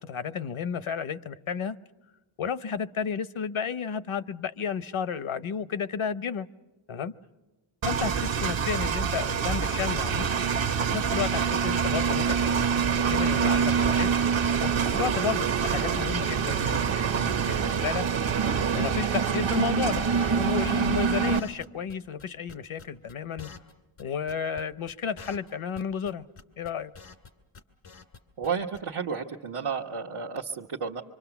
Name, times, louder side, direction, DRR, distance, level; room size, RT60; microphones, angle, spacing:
voice 1, 0.0-1.8 2.4-6.5 6.9-7.1 7.9-10.3 10.8-14.2 14.6-18.1 18.7-23.5 24.0-26.3 26.6-26.9, left 7 dB, 70° left, 15 dB, 0.9 m, -32 dB
Engine, 7.8-21.4, right 6 dB, 65° right, 1.0 m, -25 dB
sound 1, 13.9-14.2 14.5-14.6 14.8-15.1 15.4-15.5 15.7-16.0 16.2-16.3 16.5-16.6 16.8-17.8 18.0-19.0 19.2-19.6 19.8-21.9 22.2-23.7 24.0-24.1 24.3-24.6 24.9-25.0 25.2-25.5 25.8-26.1 26.4-27.3 27.5-28.2 28.4-28.5 28.7-28.8, left 5 dB, 90° left, 2.1 m, -46 dB
voice 2, 28.4-31.0, right 6 dB, 90° right, -2 dB, 1.2 m, -32 dB
25.5 x 25.0 x 7.0 m, 1.1 s
wide cardioid pair, 65°, 50 cm